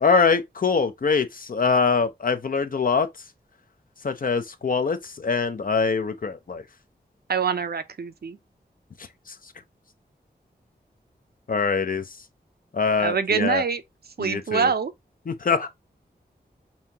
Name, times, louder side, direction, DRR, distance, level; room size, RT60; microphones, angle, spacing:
voice 1, 0.0-3.1 4.0-6.6 9.3-9.4 11.5-12.0 12.7-13.6 14.2-14.7 15.3-15.7, left 5 dB, 55° left, 0.7 m, -23 dB
voice 2, 7.3-8.4 13.0-13.8 14.2-14.9, right 6 dB, 65° right, 0.6 m, -25 dB
5.5 x 2.8 x 2.8 m
wide cardioid pair, 65°, 18 cm